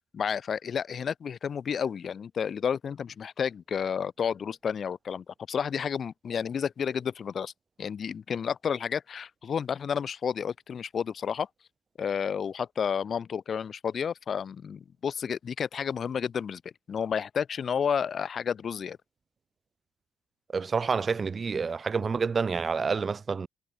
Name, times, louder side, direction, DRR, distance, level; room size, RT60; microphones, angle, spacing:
voice 1, 0.1-7.5 7.8-11.5 12.0-16.6 16.9-19.0, left 7 dB, 50° left, 1.5 m, -31 dB
voice 2, 20.5-23.5, right 5 dB, 35° right, 1.1 m, -28 dB
cardioid pair, 90°, 0 cm